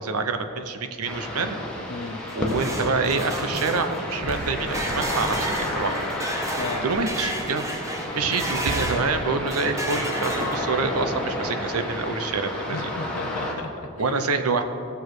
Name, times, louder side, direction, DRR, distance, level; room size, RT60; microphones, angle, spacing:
voice 1, 0.0-1.6 2.3-6.0 6.8-12.9 14.0-14.6, right 4 dB, 80° right, 8 dB, 0.8 m, -27 dB
sound 1, 1.0-13.5, left 1 dB, 5° left, 1.5 m, -31 dB
voice 2, 1.9-2.2 6.6-6.8 12.7-14.3, left 4 dB, 80° left, 4 dB, 0.7 m, -35 dB
sound 2, 2.1-9.1 9.5-10.9, right 1 dB, 15° right, 1.0 m, -32 dB
sound 3, 4.2-9.3, right 4 dB, 65° right, 0.4 m, -39 dB
16.5 x 6.9 x 4.8 m, 2.8 s
head